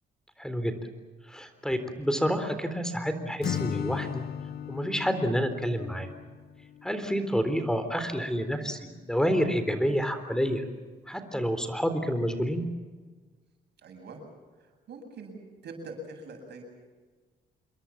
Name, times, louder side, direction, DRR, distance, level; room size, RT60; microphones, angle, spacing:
voice 1, 0.4-0.9 1.3-4.3 4.7-6.1 6.8-10.6 11.1-12.7, equal, 5° left, 9 dB, 3.7 m, -29 dB
Acoustic guitar / Strum, 3.4-7.3, left 9 dB, 65° left, 0.8 m, -37 dB
voice 2, 13.8-14.2 14.6-16.6, right 2 dB, 70° right, 4 dB, 8.0 m, -43 dB
27.5 x 22.0 x 7.3 m, 1.4 s
cardioid pair, 90°, 18 cm